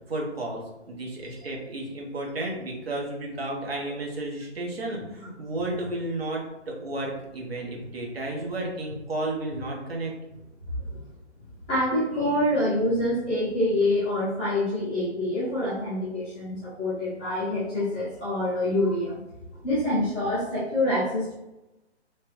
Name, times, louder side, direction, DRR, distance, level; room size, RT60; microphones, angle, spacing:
voice 1, 0.1-0.6 0.9-10.1, right 2 dB, 55° right, -1 dB, 1.2 m, -32 dB
voice 2, 11.7-19.2 19.6-21.3, left 1 dB, 10° left, -13 dB, 0.5 m, -26 dB
3.1 x 3.0 x 3.1 m, 0.97 s
figure-of-eight pair, 135°, 35 cm